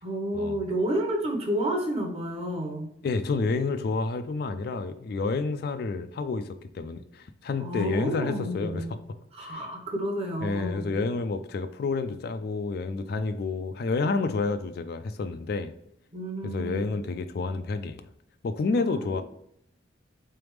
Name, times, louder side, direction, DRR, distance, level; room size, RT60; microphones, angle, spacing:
voice 1, 0.0-2.9 7.6-8.9 9.3-11.0 16.1-17.0 18.9-19.2, right 1 dB, 30° right, 0.9 m, -31 dB
voice 2, 3.0-8.8 9.4-9.6 10.4-15.7 16.4-18.0 18.4-19.2, left 3 dB, 55° left, 0.3 m, -29 dB
3.9 x 3.4 x 3.1 m
head